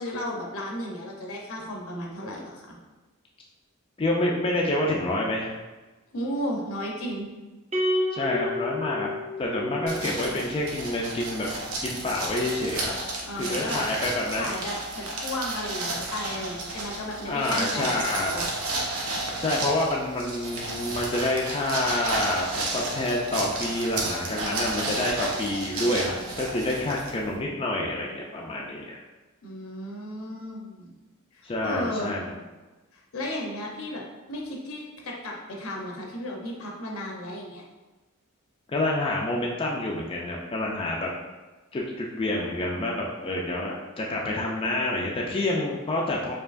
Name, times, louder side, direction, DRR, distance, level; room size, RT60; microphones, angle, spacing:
voice 1, 0.0-2.8 6.1-7.3 13.3-13.8 14.4-18.4 29.4-30.9 31.3-32.2 32.9-34.0 34.3-37.6, left 1 dB, 75° left, -1 dB, 0.8 m, -34 dB
voice 2, 4.0-5.6 8.1-9.1 9.4-11.5 11.8-12.9 13.4-14.5 17.3-18.4 19.4-29.0 31.4-32.3 38.7-41.1 41.7-46.3, left 1 dB, 25° left, -2 dB, 0.3 m, -28 dB
sound 1, 7.7-10.2, left 1 dB, 30° right, 0.6 m, -29 dB
sound 2, 9.9-27.4, right 2 dB, 85° right, 0.8 m, -32 dB
4.5 x 2.8 x 2.5 m, 1.2 s
head